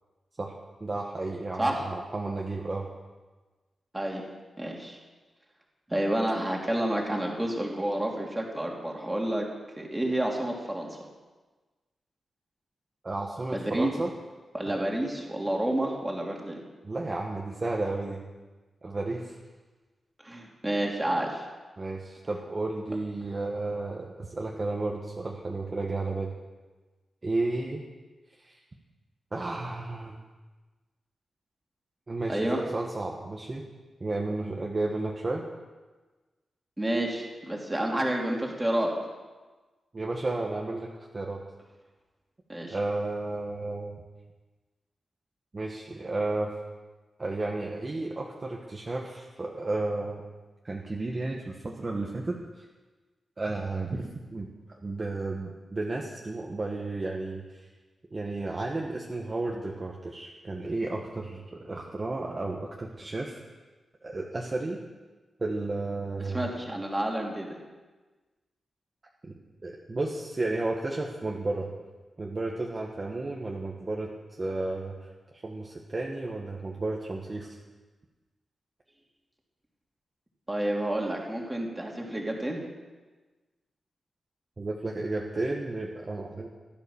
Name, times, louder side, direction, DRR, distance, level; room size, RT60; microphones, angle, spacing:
voice 1, 0.8-2.9 13.0-14.1 14.7-14.8 16.8-18.2 18.8-19.3 21.8-26.3 27.2-27.9 28.4-28.6 29.3-30.2 32.1-33.6 34.0-35.4 39.9-41.4 42.7-44.0 45.5-46.5 47.2-50.2 50.6-52.6 53.4-54.5 54.8-57.7 58.1-63.4 64.0-64.8 65.4-66.5 69.2-69.3 69.6-71.7 72.2-77.6 84.6-86.5, right 2 dB, 25° right, -1 dB, 1.6 m, -33 dB
voice 2, 3.9-4.3 4.6-5.0 5.9-9.5 9.8-11.0 13.5-13.9 14.5-16.6 20.2-21.4 32.3-32.6 36.8-38.9 42.5-42.8 66.2-67.5 80.5-82.6, right 1 dB, 10° right, 0 dB, 2.9 m, -29 dB
15.5 x 12.5 x 7.2 m, 1.3 s
wide cardioid pair, 150°, 0 cm